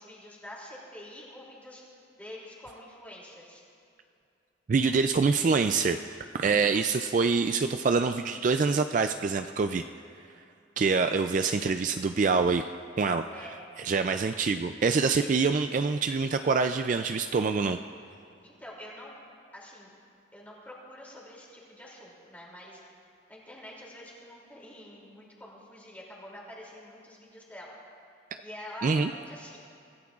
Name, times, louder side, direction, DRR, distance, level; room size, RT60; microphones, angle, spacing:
voice 1, 0.0-1.8 2.2-3.6 6.3-6.8 13.3-13.6 18.4-19.2 19.5-19.9 20.3-22.8 23.3-27.7 28.4-29.6, left 1 dB, 10° left, -4 dB, 2.7 m, -46 dB
voice 2, 4.7-9.9 10.8-12.6 13.0-13.2 13.8-17.8 28.8-29.1, right 4 dB, 40° right, 8 dB, 0.3 m, -25 dB
24.5 x 15.5 x 2.4 m, 2.6 s
head